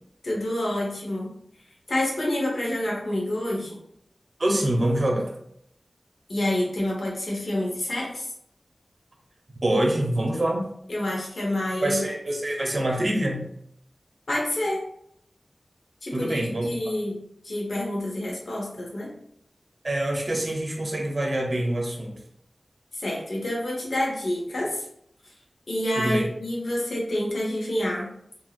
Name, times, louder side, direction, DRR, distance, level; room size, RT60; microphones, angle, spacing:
voice 1, 0.2-1.3 1.9-3.8 6.3-8.3 10.9-12.1 14.3-14.8 16.0-17.2 17.4-19.1 22.9-24.9 25.7-28.1, left 1 dB, 80° left, -3 dB, 1.0 m, -28 dB
voice 2, 4.4-5.3 9.6-10.7 11.8-13.5 16.1-16.7 19.8-22.1 26.0-26.3, right 1 dB, 50° right, 1 dB, 0.7 m, -25 dB
2.8 x 2.8 x 2.4 m, 0.71 s
wide cardioid pair, 55°, 0 cm